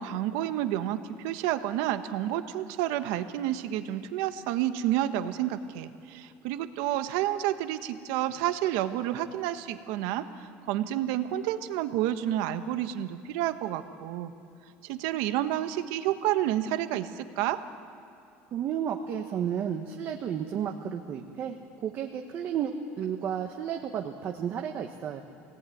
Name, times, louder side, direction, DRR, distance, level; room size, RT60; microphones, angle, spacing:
voice 1, 0.0-14.3 14.8-17.6, right 12 dB, 70° right, 9 dB, 1.3 m, -30 dB
voice 2, 18.5-25.2, right 8 dB, 35° right, 3 dB, 1.3 m, -32 dB
24.0 x 18.5 x 9.3 m, 2.5 s
cardioid pair, 160°, 6 cm